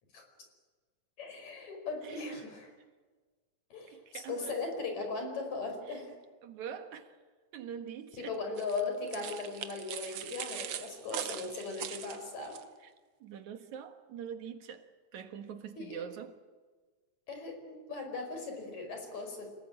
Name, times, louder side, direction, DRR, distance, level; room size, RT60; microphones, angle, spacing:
voice 1, 1.2-2.7 3.7-6.1 8.2-12.6 15.8-16.0 17.3-19.5, left 3 dB, 70° left, 6.2 m, -38 dB
voice 2, 3.9-4.6 5.9-6.0 6.4-7.2 7.5-8.4 10.6-10.8 12.8-12.9 13.2-16.4, right 8 dB, 75° right, 2.8 m, -44 dB
sound 1, 8.6-12.6, right 10 dB, 60° right, 1.8 m, -41 dB
28.0 x 19.0 x 8.9 m
omnidirectional pair, 3.4 m